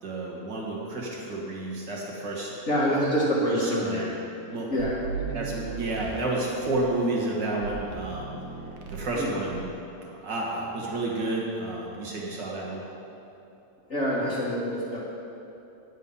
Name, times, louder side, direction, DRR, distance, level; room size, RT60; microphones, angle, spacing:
voice 1, 0.0-2.5 2.8-3.1 3.4-4.1 4.5-4.7 5.3-8.3 8.9-9.7 10.0-12.8, right 2 dB, 50° right, -3 dB, 1.3 m, -31 dB
voice 2, 2.7-4.1 4.7-5.0 5.3-5.4 9.1-9.3 13.9-15.0, equal, 40° left, -9 dB, 1.1 m, -26 dB
sound 1, 4.8-6.9 7.6-9.2 9.4-9.8, right 6 dB, 75° right, 2.5 m, -37 dB
10.5 x 9.3 x 5.5 m, 2.8 s
omnidirectional pair, 4.1 m